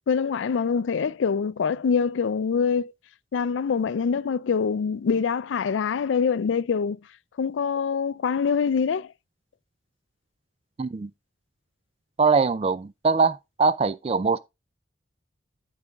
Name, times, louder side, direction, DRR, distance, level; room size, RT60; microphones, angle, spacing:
voice 1, 0.1-2.9 3.3-7.0 7.4-9.1, left 6 dB, 85° left, 0.4 m, -24 dB
voice 2, 10.8-11.1 12.2-14.4, right 4 dB, 30° right, 0.3 m, -22 dB
10.5 x 5.0 x 3.5 m
head